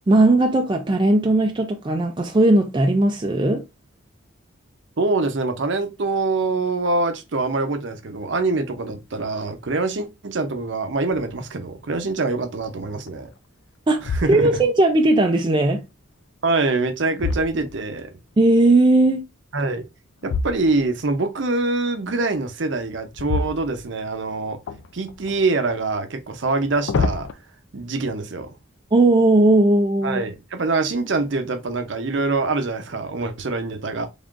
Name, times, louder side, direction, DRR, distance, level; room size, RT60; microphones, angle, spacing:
voice 1, 0.1-3.6 13.9-14.0 14.3-15.8 18.4-19.2 28.9-30.2, right 2 dB, 20° right, 0.3 m, -17 dB
voice 2, 5.0-13.3 14.0-14.6 16.4-18.1 19.5-19.8 20.2-24.6 24.9-27.3 27.7-28.5 30.0-34.1, right 3 dB, 60° right, 0.6 m, -24 dB
sound 1, 11.1-11.6 12.1-12.2 12.8-13.4 13.9-14.8 16.5-18.2 20.2-21.0 23.1-24.2 24.7-25.4 26.4-27.3, left 4 dB, 60° left, 0.3 m, -29 dB
3.6 x 3.5 x 2.4 m
head